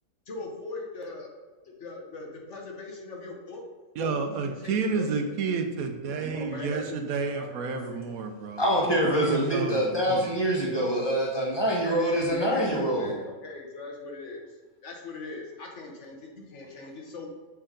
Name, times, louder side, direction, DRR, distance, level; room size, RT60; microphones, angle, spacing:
voice 1, 0.3-1.3 1.8-3.6 4.0-5.1 6.3-8.1 11.9-14.4 14.8-17.3, left 3 dB, 55° left, 0 dB, 1.2 m, -40 dB
voice 2, 4.0-8.6 9.1-10.3, right 5 dB, 80° right, 5 dB, 1.1 m, -30 dB
voice 3, 8.6-13.1, equal, 20° left, -4 dB, 1.3 m, -25 dB
7.0 x 4.5 x 3.7 m, 1.4 s
omnidirectional pair, 1.5 m